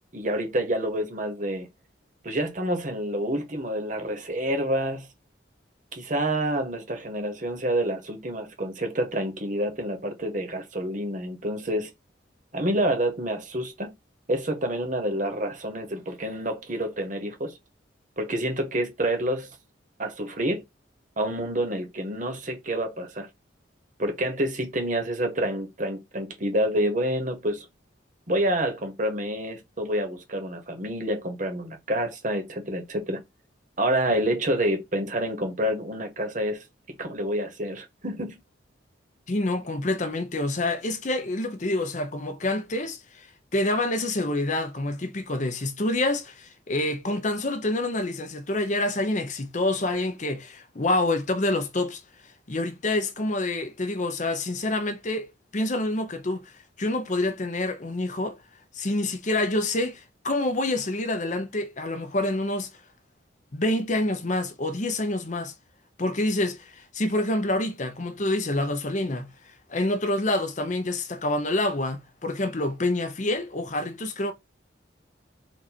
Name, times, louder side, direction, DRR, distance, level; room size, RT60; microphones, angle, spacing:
voice 1, 0.1-1.7 2.2-5.1 5.9-11.9 12.5-13.9 14.3-17.6 18.2-19.5 20.0-20.6 21.2-23.3 24.0-27.7 28.3-33.2 33.8-36.6 37.0-38.4, right 1 dB, 45° right, 1.2 m, -28 dB
voice 2, 39.3-43.3 43.5-52.0 52.5-56.5 56.8-58.4 58.7-62.7 63.5-65.5 66.0-74.3, left 2 dB, 40° left, 0.7 m, -27 dB
4.5 x 2.5 x 4.3 m
head